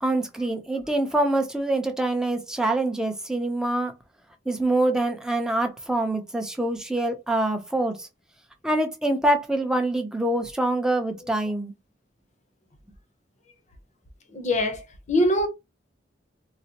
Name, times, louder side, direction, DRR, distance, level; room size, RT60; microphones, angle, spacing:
voice 1, 0.0-3.9 4.5-8.1 8.6-11.7, right 1 dB, 5° right, 0.6 m, -25 dB
voice 2, 14.3-15.5, left 1 dB, 40° left, 0.8 m, -23 dB
3.9 x 2.1 x 2.8 m
head